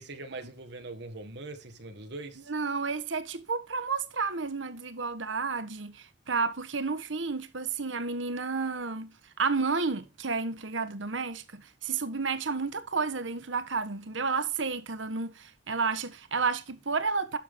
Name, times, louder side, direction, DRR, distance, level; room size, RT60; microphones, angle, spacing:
voice 1, 0.0-2.5, right 2 dB, 60° right, 1.8 m, -42 dB
voice 2, 2.5-17.4, right 4 dB, 85° right, 1.3 m, -31 dB
12.0 x 7.4 x 3.7 m
head